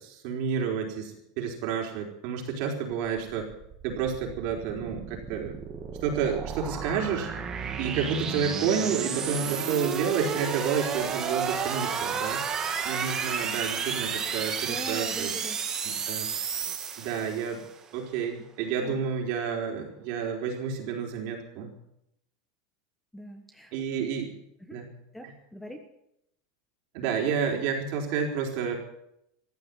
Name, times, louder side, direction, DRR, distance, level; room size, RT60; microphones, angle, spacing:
voice 1, 0.0-3.5 3.8-5.5 6.0-7.3 7.8-12.4 12.8-15.3 15.8-16.3 17.0-17.6 17.9-21.7 23.7-24.3 24.7-24.9 26.9-28.7, right 6 dB, 55° right, 1 dB, 4.5 m, -30 dB
sound 1, 3.3-17.7, right 6 dB, 25° right, 1.8 m, -32 dB
voice 2, 14.6-15.6 18.8-19.0 23.1-23.7 24.6-24.8 25.1-25.8, equal, 5° left, 5 dB, 1.4 m, -42 dB
15.0 x 9.6 x 9.8 m, 0.79 s
supercardioid pair, 160°, 2 cm